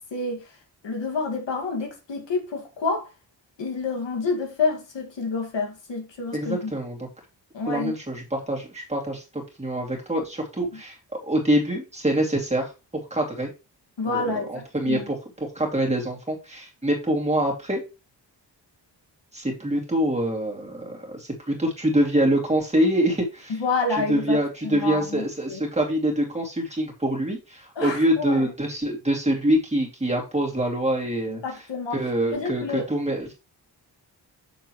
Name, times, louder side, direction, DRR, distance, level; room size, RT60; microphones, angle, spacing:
voice 1, 0.1-0.5 0.8-3.1 3.6-6.7 7.5-7.9 14.0-15.1 23.5-25.6 27.8-28.5 31.3-32.0 32.3-32.8, left 4 dB, 90° left, 2.1 m, -28 dB
voice 2, 6.3-7.1 7.7-11.0 11.2-12.7 13.1-13.5 14.1-17.8 19.3-23.5 24.1-31.4 31.9-33.3, right 1 dB, 15° right, 2.5 m, -25 dB
7.0 x 6.6 x 3.1 m
wide cardioid pair, 130°, 42 cm